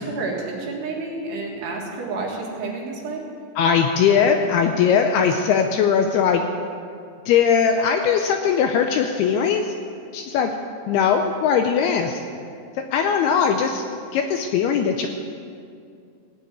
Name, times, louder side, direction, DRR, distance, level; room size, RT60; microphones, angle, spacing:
voice 1, 0.0-3.2, right 3 dB, 70° right, -1 dB, 3.9 m, -30 dB
voice 2, 3.6-6.4 7.3-9.7 10.1-10.5 10.9-12.2 12.9-13.8 14.1-15.1, left 7 dB, 80° left, 5 dB, 2.3 m, -20 dB
17.0 x 6.3 x 9.1 m, 2.3 s
omnidirectional pair, 5.1 m